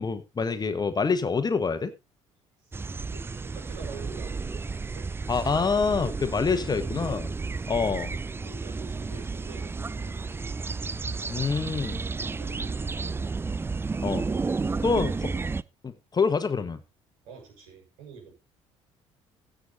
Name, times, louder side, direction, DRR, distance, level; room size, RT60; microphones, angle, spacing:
voice 1, 0.0-1.9 5.3-7.3 7.7-8.1 11.3-12.0 14.0-14.3 14.8-15.3 15.8-16.8, left 5 dB, 25° left, 10 dB, 1.3 m, -26 dB
sound 1, 2.7-15.6, right 4 dB, 15° right, 0.5 m, -32 dB
voice 2, 3.1-5.1 6.1-7.0 8.4-10.3 11.0-11.8 12.4-13.3 14.6-15.6 17.2-18.3, right 5 dB, 60° right, 1 dB, 6.1 m, -47 dB
16.0 x 6.5 x 4.0 m, 0.26 s
figure-of-eight pair, 55°, 16 cm